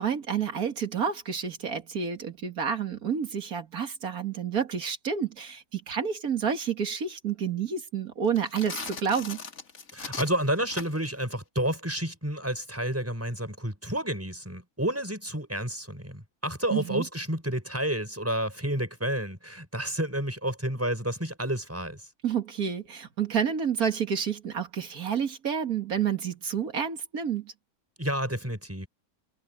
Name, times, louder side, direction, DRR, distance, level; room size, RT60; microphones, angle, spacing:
voice 1, 0.0-9.4 16.7-17.0 22.2-27.5, right 7 dB, 90° right, 2.4 m, -29 dB
sound 1, 8.3-11.2, left 5 dB, 65° left, 2.4 m, -39 dB
voice 2, 9.9-22.0 28.0-28.9, right 1 dB, 10° right, 5.9 m, -30 dB
omnidirectional pair, 1.5 m